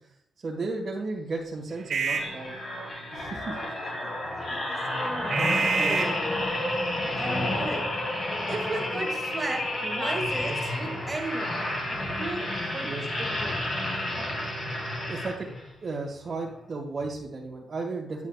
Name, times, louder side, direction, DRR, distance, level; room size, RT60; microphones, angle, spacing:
voice 1, 0.4-2.6 3.1-3.6 5.5-6.1 12.8-13.0 15.1-15.5 15.8-18.3, right 3 dB, 45° right, -4 dB, 1.6 m, -34 dB
sound 1, 1.7-15.2, right 5 dB, 75° right, 1.5 m, -36 dB
sound 2, 2.1-15.7 16.2-16.4, left 1 dB, 45° left, 2.9 m, -31 dB
voice 2, 4.0-6.3 7.1-7.9 8.5-11.5 12.2-12.9 13.2-13.6, right 2 dB, 25° right, 2 dB, 1.6 m, -35 dB
9.7 x 7.2 x 2.4 m, 0.70 s
cardioid pair, 95°, 0 cm